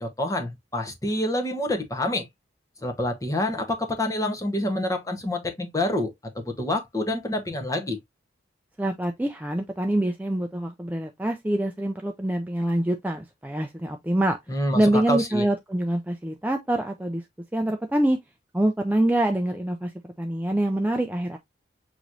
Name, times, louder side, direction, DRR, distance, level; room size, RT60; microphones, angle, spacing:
voice 1, 0.0-2.3 2.8-8.0 14.5-15.5, left 1 dB, 15° left, 0.9 m, -27 dB
voice 2, 8.8-14.4 14.7-17.2 17.5-18.2 18.5-19.9 20.2-21.4, right 1 dB, 10° right, 0.4 m, -25 dB
5.9 x 3.0 x 2.5 m
head